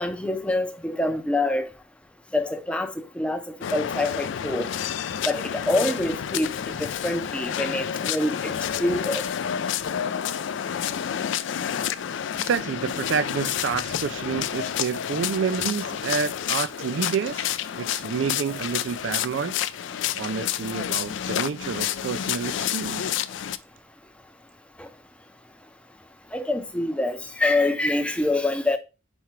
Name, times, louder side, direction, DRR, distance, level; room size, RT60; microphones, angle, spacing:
voice 1, 0.0-1.7 2.3-3.4 3.7-4.7 5.3-6.5 6.8-8.5 8.8-9.2 26.3-28.8, left 2 dB, 5° left, 0.5 m, -25 dB
sound 1, 3.6-23.6, left 9 dB, 65° left, 0.3 m, -29 dB
voice 2, 12.4-19.5 20.2-23.1, right 6 dB, 65° right, 0.3 m, -29 dB
4.9 x 4.3 x 4.5 m
head